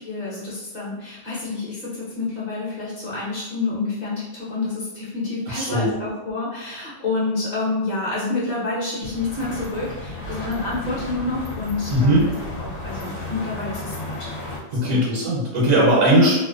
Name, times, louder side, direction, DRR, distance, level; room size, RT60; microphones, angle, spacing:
voice 1, 0.0-14.5 14.8-15.0 16.1-16.3, left 3 dB, 40° left, -7 dB, 0.8 m, -28 dB
voice 2, 5.5-5.9 11.9-12.2 14.7-16.3, right 1 dB, 75° right, -5 dB, 1.1 m, -18 dB
sound 1, 9.0-14.6, left 2 dB, 70° left, 1.0 m, -33 dB
2.5 x 2.2 x 2.3 m, 1.0 s
omnidirectional pair, 1.4 m